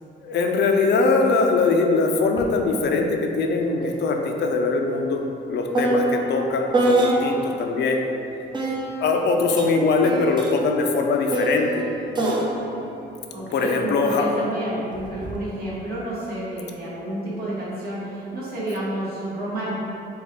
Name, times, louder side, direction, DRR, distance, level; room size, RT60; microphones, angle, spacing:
voice 1, 0.2-5.2 5.5-8.1 9.0-11.8 13.5-14.3, left 3 dB, 60° left, 3 dB, 0.5 m, -21 dB
sound 1, 2.4-2.5 2.9-7.6 8.5-14.1 14.9-15.4, right 1 dB, 25° right, 0.5 m, -26 dB
voice 2, 13.3-19.8, right 1 dB, 50° right, -9 dB, 1.5 m, -30 dB
4.0 x 2.4 x 3.5 m, 2.8 s
cardioid pair, 90°, 20 cm